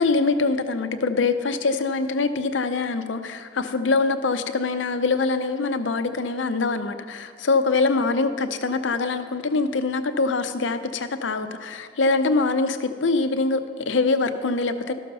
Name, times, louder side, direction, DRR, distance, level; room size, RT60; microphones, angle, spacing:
voice 1, 0.0-14.9, left 3 dB, 85° left, 8 dB, 0.7 m, -24 dB
13.0 x 6.6 x 5.4 m, 2.1 s
head